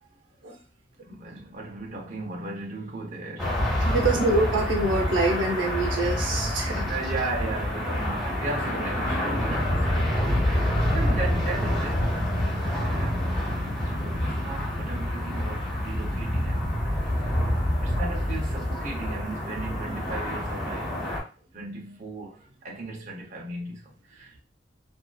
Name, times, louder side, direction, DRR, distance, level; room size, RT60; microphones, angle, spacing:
voice 1, 1.0-3.6 4.2-4.5 6.9-10.3 10.9-13.4 13.8-16.9 17.8-20.9 21.5-24.4, right 2 dB, 40° right, 0.7 m, -36 dB
sound 1, 3.4-21.2, left 1 dB, ahead, 1.1 m, -27 dB
voice 2, 3.8-6.9, right 2 dB, 80° right, 0.6 m, -25 dB
2.8 x 2.3 x 2.2 m
head